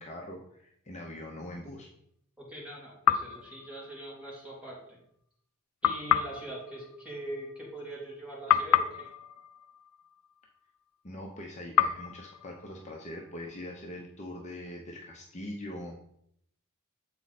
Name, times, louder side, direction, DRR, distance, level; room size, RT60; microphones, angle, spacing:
voice 1, 0.0-1.9 11.0-15.9, left 1 dB, 30° left, 0 dB, 0.8 m, -42 dB
voice 2, 2.4-5.0 5.8-9.1, right 1 dB, 5° right, -6 dB, 2.7 m, -42 dB
sound 1, 3.0-4.4 5.8-8.1 8.5-10.8 11.8-13.6, left 9 dB, 75° left, 0.4 m, -30 dB
7.3 x 4.6 x 4.1 m, 0.71 s
head